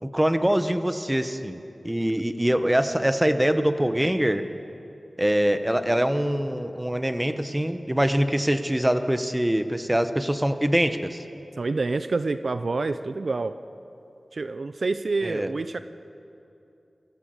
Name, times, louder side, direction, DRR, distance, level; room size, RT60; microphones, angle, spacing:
voice 1, 0.0-4.4 5.2-11.2 15.2-15.5, equal, 15° right, 9 dB, 1.2 m, -24 dB
voice 2, 11.6-13.5 14.3-15.8, right 3 dB, 70° right, 11 dB, 0.6 m, -27 dB
25.0 x 15.0 x 7.9 m, 2.8 s
wide cardioid pair, 60°, 0 cm